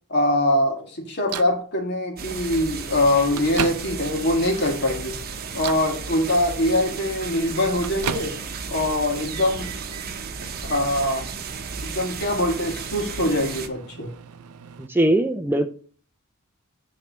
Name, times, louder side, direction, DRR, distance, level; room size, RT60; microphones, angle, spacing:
voice 1, 0.1-5.2 5.5-8.4 8.7-9.8 10.7-11.3 11.8-14.1, left 1 dB, 50° left, 1 dB, 1.9 m, -23 dB
Microwave oven, 1.3-1.6 2.6-2.7 3.1-4.2 4.7-5.1 5.5-5.9 7.2-8.7 9.0-10.1 10.6-14.9, right 7 dB, 90° right, 0.6 m, -36 dB
sound 1, 2.2-13.7, right 5 dB, 45° right, 0.9 m, -34 dB
voice 2, 14.8-15.7, right 1 dB, 10° right, 7 dB, 0.4 m, -20 dB
9.7 x 3.3 x 6.1 m, 0.43 s
head